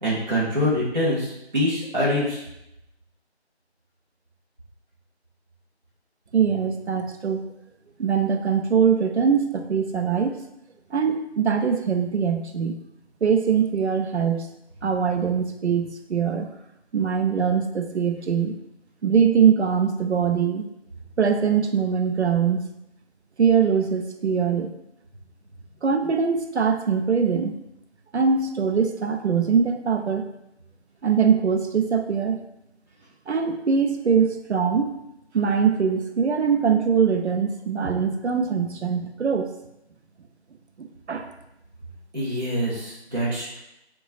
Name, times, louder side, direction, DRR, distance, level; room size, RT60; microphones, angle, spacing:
voice 1, 0.0-2.4 42.1-43.6, equal, 40° right, -8 dB, 0.7 m, -25 dB
voice 2, 6.3-7.4 8.0-10.4 10.9-12.8 13.2-14.5 14.8-16.5 16.9-18.5 19.0-20.6 21.2-22.6 23.4-24.7 25.8-27.5 28.1-30.3 31.0-32.4 33.3-35.0 35.3-39.5 40.8-41.3, right 6 dB, 75° right, 5 dB, 0.5 m, -22 dB
4.0 x 2.2 x 2.4 m, 0.84 s
figure-of-eight pair, 170°, 34 cm